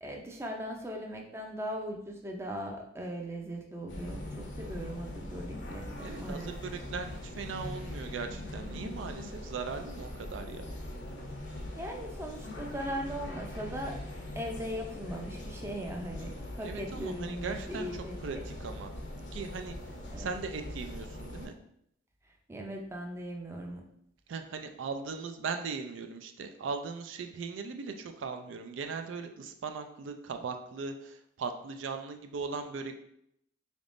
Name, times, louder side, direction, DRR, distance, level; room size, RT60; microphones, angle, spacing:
voice 1, 0.0-6.5 11.7-14.0 14.4-18.4 20.1-20.3 22.5-23.8, equal, 15° right, 1 dB, 0.4 m, -39 dB
sound 1, 3.9-21.5, left 1 dB, 70° left, 0.7 m, -41 dB
voice 2, 6.0-10.7 16.6-17.9 18.2-18.9 19.3-19.8 20.2-21.5 24.3-33.0, right 5 dB, 85° right, 7 dB, 0.4 m, -39 dB
3.9 x 3.5 x 2.5 m, 0.73 s
head